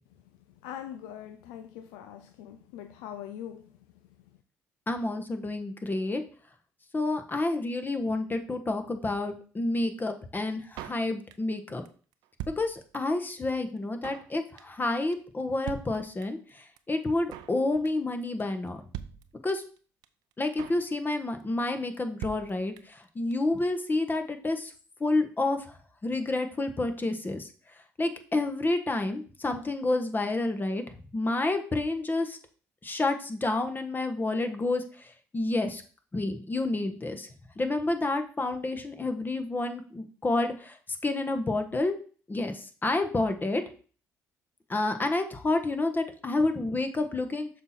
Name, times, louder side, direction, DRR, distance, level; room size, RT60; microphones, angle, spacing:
voice 1, 0.6-3.8, left 10 dB, 85° left, 9 dB, 0.4 m, -42 dB
voice 2, 4.9-6.2 6.9-11.8 12.5-18.8 19.4-19.6 20.4-24.7 25.0-27.5 28.0-30.8 31.1-32.4 32.8-35.8 36.1-37.3 37.6-40.8 41.0-41.9 42.3-43.6 44.7-47.5, left 2 dB, 25° left, 7 dB, 1.3 m, -29 dB
Drum kit, 10.8-11.6 11.9-12.0 12.1-13.2 13.5-13.6 13.8-14.3 14.6-14.9 15.1-15.2 15.4-15.5 15.7-16.5 16.8-16.9 17.0-17.6 17.9-18.1 18.4-18.5 18.7-18.8 18.9-19.8 20.0-20.1 20.3-20.9 21.1-21.4 21.7-21.8 21.9-22.0 22.2-23.0 23.3-23.4 23.6-23.7, right 11 dB, 80° right, 0.5 m, -42 dB
6.7 x 4.5 x 4.3 m, 0.40 s
supercardioid pair, 60°, 7 cm